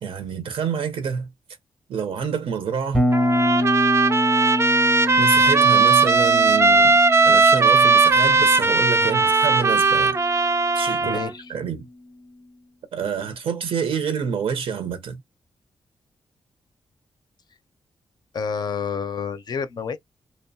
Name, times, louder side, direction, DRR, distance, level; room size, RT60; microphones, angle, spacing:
voice 1, 0.0-1.3 1.9-3.1 5.2-10.2 10.7-11.2 11.5-11.8 12.9-15.2, right 6 dB, 75° right, 0.6 m, -27 dB
Bass guitar, 2.9-11.0, left 1 dB, 5° left, 0.7 m, -27 dB
Trumpet, 3.1-11.3, right 4 dB, 30° right, 0.4 m, -18 dB
voice 2, 11.0-11.4 18.3-20.0, left 6 dB, 45° left, 0.4 m, -29 dB
2.7 x 2.0 x 2.6 m
wide cardioid pair, 160°, 9 cm